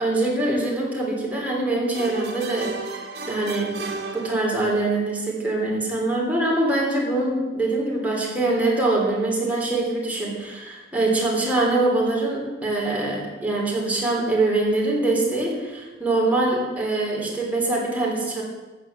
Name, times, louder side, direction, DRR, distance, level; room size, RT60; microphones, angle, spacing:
voice 1, 0.0-2.8 3.3-18.4, right 2 dB, 10° right, -3 dB, 3.1 m, -23 dB
sound 1, 1.9-4.9, right 3 dB, 60° right, 2.2 m, -34 dB
14.0 x 8.3 x 7.2 m, 1.2 s
head